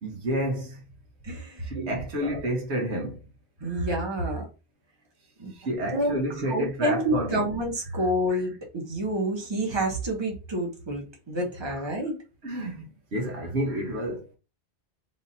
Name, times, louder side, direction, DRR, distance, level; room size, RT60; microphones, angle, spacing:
voice 1, 0.0-0.8 1.7-3.2 3.6-3.9 5.5-7.5 8.3-8.4 11.8-11.9 12.4-14.4, right 1 dB, 75° right, 1.3 m, -30 dB
voice 2, 1.2-1.7 2.2-2.3 3.6-4.4 5.4-5.5 5.9-6.2 6.5-12.1, right 1 dB, 25° right, 1.2 m, -28 dB
3.5 x 2.8 x 4.0 m
omnidirectional pair, 1.1 m